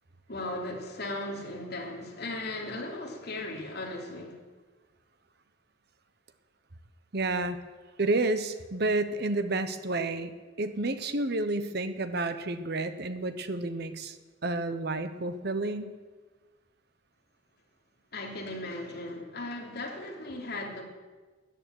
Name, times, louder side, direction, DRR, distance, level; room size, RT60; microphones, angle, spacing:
voice 1, 0.3-4.4 18.1-20.8, left 2 dB, 55° left, -1 dB, 3.2 m, -37 dB
voice 2, 7.1-7.6 8.0-10.3 10.6-14.2 14.4-16.0, right 2 dB, 55° right, 10 dB, 1.1 m, -30 dB
13.5 x 10.5 x 9.4 m, 1.3 s
head